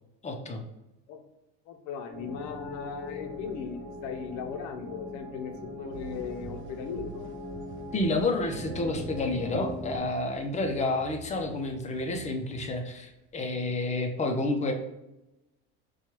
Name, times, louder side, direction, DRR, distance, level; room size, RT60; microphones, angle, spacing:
voice 1, 0.2-0.6 7.9-14.7, left 2 dB, 20° left, 4 dB, 0.5 m, -29 dB
voice 2, 1.7-7.3, left 6 dB, 60° left, 5 dB, 0.6 m, -38 dB
sound 1, 2.1-10.0, left 1 dB, 5° right, 0.9 m, -41 dB
sound 2, 5.9-13.3, right 4 dB, 35° right, 0.8 m, -48 dB
4.4 x 2.3 x 3.0 m, 0.96 s
supercardioid pair, 100°, 32 cm